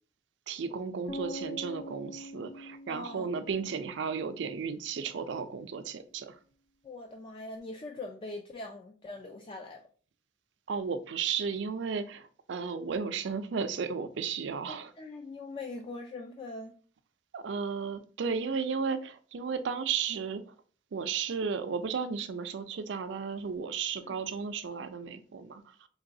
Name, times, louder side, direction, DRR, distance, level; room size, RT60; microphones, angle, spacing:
voice 1, 0.5-6.4 10.7-14.9 17.3-20.4 20.9-25.6, right 5 dB, 70° right, 0.4 m, -34 dB
sound 1, 1.1-5.0, left 1 dB, 75° left, 1.3 m, -44 dB
voice 2, 2.9-3.3 6.8-9.8 14.7-16.8 24.0-24.2, left 2 dB, 30° left, 0.3 m, -42 dB
3.9 x 3.0 x 2.6 m
head